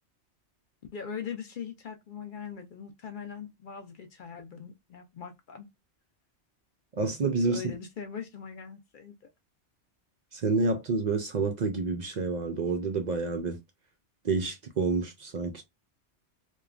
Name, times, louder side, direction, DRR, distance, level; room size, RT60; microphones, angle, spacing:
voice 1, 0.9-5.7 7.5-9.3, left 7 dB, 60° left, 0.6 m, -41 dB
voice 2, 7.0-7.6 10.3-13.6 14.2-15.6, right 4 dB, 60° right, 0.4 m, -28 dB
3.0 x 2.2 x 2.3 m
omnidirectional pair, 1.2 m